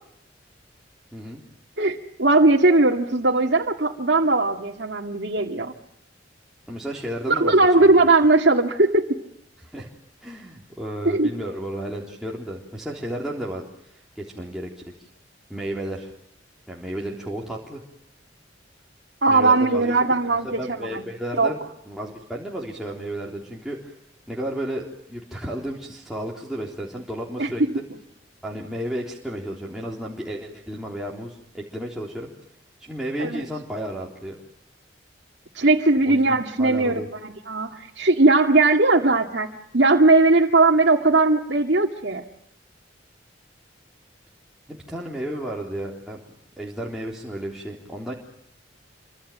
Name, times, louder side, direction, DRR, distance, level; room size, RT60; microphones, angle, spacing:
voice 1, 1.1-1.4 6.7-7.9 9.6-9.9 10.2-15.1 15.5-16.2 16.7-17.8 19.3-20.1 20.4-21.6 21.9-24.0 24.3-27.8 28.4-32.3 32.8-34.4 36.1-37.1 44.7-46.2 46.6-48.1, right 1 dB, 5° right, -3 dB, 3.6 m, -33 dB
voice 2, 1.8-5.7 7.3-9.1 11.0-11.3 19.2-21.0 21.4-21.5 27.4-27.7 33.2-33.4 35.5-39.5 39.7-42.2, right 2 dB, 65° right, 0 dB, 2.2 m, -19 dB
28.5 x 25.5 x 7.5 m, 0.75 s
head